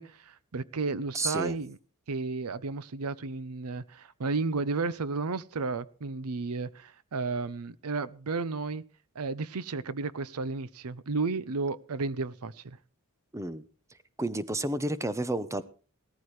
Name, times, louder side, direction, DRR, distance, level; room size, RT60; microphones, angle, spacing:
voice 1, 0.0-1.8 2.1-8.8 9.2-12.8, right 3 dB, 80° right, 19 dB, 0.7 m, -33 dB
voice 2, 1.1-1.6 13.3-13.6 14.2-15.6, right 1 dB, 15° right, 14 dB, 0.8 m, -31 dB
17.5 x 14.0 x 3.2 m, 0.38 s
head